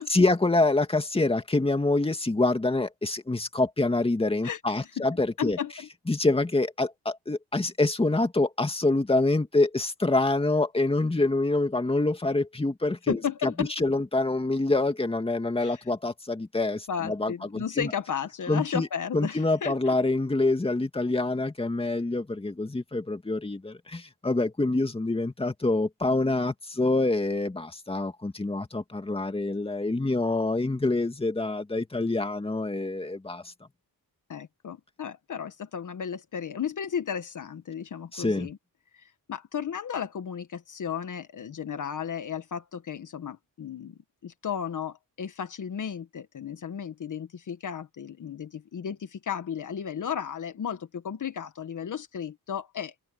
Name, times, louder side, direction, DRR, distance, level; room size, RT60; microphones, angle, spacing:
voice 1, 0.0-5.6 6.1-13.5 13.8-17.9 18.5-18.9 19.1-33.5 38.1-38.5, left 2 dB, 15° left, 2.3 m, -26 dB
voice 2, 4.4-5.0 5.4-5.9 13.1-13.9 15.6-15.8 16.9-19.9 34.3-38.6 38.9-52.9, left 8 dB, 55° left, 1.5 m, -34 dB
open air
cardioid pair, 105°, 37 cm